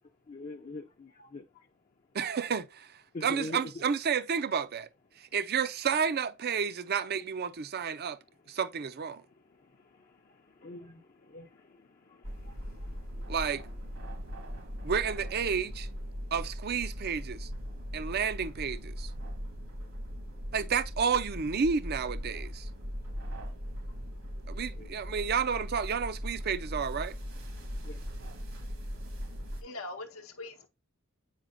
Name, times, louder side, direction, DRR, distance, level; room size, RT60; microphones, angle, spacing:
voice 1, 0.3-1.4 3.1-3.6 10.6-11.0 11.3-11.5 24.8-24.9 27.9-28.0, left 2 dB, 40° left, 0.5 m, -41 dB
voice 2, 2.1-4.9 5.2-8.2 8.5-9.2 13.3-13.6 14.8-15.9 16.3-17.5 17.9-19.1 20.5-22.7 24.5-27.2, right 6 dB, 50° right, 0.5 m, -31 dB
sound 1, 12.2-29.6, equal, 75° right, 1.9 m, -39 dB
voice 3, 28.9-30.7, left 2 dB, 75° left, 0.8 m, -44 dB
7.4 x 5.0 x 2.5 m
head